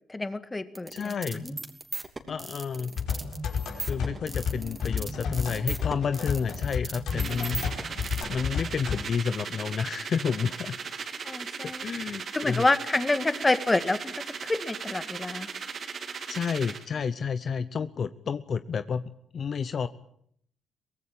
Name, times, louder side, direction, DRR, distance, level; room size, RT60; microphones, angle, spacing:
voice 1, 0.1-1.5 11.2-11.9 12.3-15.5, left 2 dB, 20° left, 11 dB, 2.0 m, -28 dB
sound 1, 0.7-8.2, right 3 dB, 25° right, 3.0 m, -38 dB
voice 2, 0.9-1.5 2.3-2.9 3.8-7.9 8.3-10.8 11.8-12.7 16.3-19.0 19.3-19.9, left 6 dB, 50° left, 12 dB, 0.9 m, -30 dB
sound 2, 3.0-9.0, left 6 dB, 75° left, 5.3 m, -32 dB
sound 3, 7.1-16.8, right 6 dB, 50° right, 2.7 m, -37 dB
24.0 x 18.0 x 8.7 m, 0.68 s
cardioid pair, 90°, 0 cm